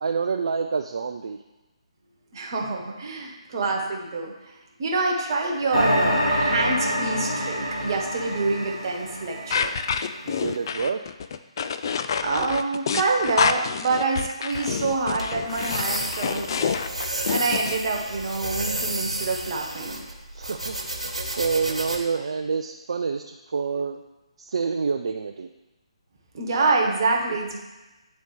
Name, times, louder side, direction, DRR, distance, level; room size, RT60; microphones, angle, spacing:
voice 1, 0.0-1.4 10.2-11.1 20.3-24.0 24.4-25.5, right 5 dB, 55° right, 5 dB, 0.3 m, -28 dB
voice 2, 2.3-4.3 4.8-9.8 12.2-16.9 17.3-20.0 26.3-27.6, right 3 dB, 40° right, 0 dB, 1.1 m, -26 dB
sound 1, 5.7-10.2, equal, 90° left, 1.7 m, -26 dB
sound 2, 9.5-17.8, left 6 dB, 40° left, 0.3 m, -27 dB
sound 3, 14.5-22.0, right 1 dB, 85° right, 1.3 m, -32 dB
9.5 x 4.0 x 3.2 m, 1.1 s
figure-of-eight pair, 140°, 3 cm